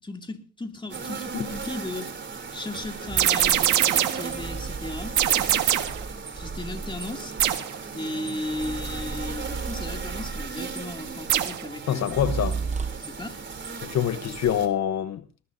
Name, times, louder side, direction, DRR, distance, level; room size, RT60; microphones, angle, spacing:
voice 1, 0.0-2.1 2.5-5.2 6.3-7.4 7.9-12.3 13.0-13.5, left 2 dB, 15° left, 2.5 m, -36 dB
sound 1, 0.9-14.7, right 5 dB, 40° right, 3.4 m, -37 dB
sound 2, 3.1-3.4 4.3-7.3 8.5-10.7 12.1-13.2, right 4 dB, 25° right, 0.8 m, -34 dB
sound 3, 3.2-4.3 5.2-6.0 7.4-7.8 11.3-11.7, right 11 dB, 75° right, 1.7 m, -22 dB
voice 2, 11.9-12.6 13.8-15.2, left 10 dB, 60° left, 1.0 m, -25 dB
20.5 x 19.5 x 2.7 m
cardioid pair, 90°, 30 cm